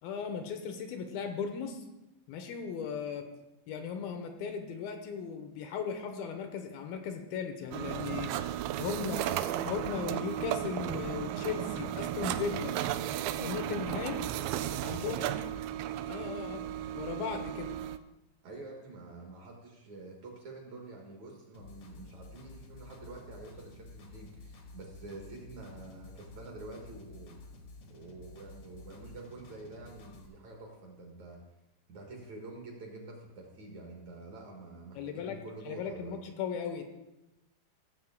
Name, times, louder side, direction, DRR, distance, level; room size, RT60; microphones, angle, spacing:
voice 1, 0.0-1.8 2.3-3.3 3.7-8.3 8.8-9.2 9.6-12.8 13.4-14.3 14.8-15.2 16.1-16.7 16.9-17.7 34.9-35.4 35.7-36.8, left 6 dB, 80° left, 5 dB, 2.6 m, -37 dB
sound 1, 7.7-18.0, right 11 dB, 85° right, 2.4 m, -35 dB
voice 2, 9.0-9.3 15.0-15.5 18.4-27.4 27.9-31.4 31.9-36.2, right 2 dB, 55° right, 0 dB, 2.4 m, -47 dB
sound 2, 21.5-30.3, left 2 dB, 60° left, 1.5 m, -51 dB
15.5 x 7.4 x 3.6 m, 0.97 s
omnidirectional pair, 4.4 m